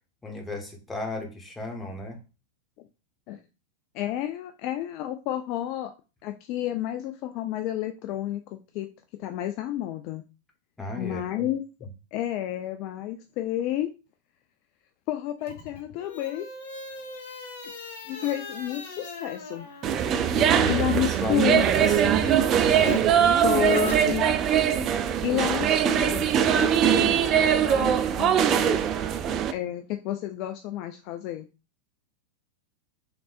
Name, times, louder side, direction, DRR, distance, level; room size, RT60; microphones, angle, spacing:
voice 1, 0.2-2.2 10.8-11.5 11.8-11.9 20.3-23.4, left 2 dB, 10° left, 2 dB, 1.0 m, -34 dB
voice 2, 3.9-5.9 6.2-8.9 9.2-10.2 11.0-11.6 12.1-13.9 15.1-16.5 17.6-17.7 18.1-19.7 20.7-21.7 23.4-24.3 25.2-28.8 29.5-31.5, left 13 dB, 45° left, 7 dB, 0.3 m, -30 dB
sound 1, 15.4-22.0 22.3-24.6, left 3 dB, 60° left, 1.0 m, -40 dB
sound 2, 19.8-29.5, right 9 dB, 30° right, 0.4 m, -22 dB
3.7 x 3.3 x 2.5 m, 0.31 s
figure-of-eight pair, 90°, 0 cm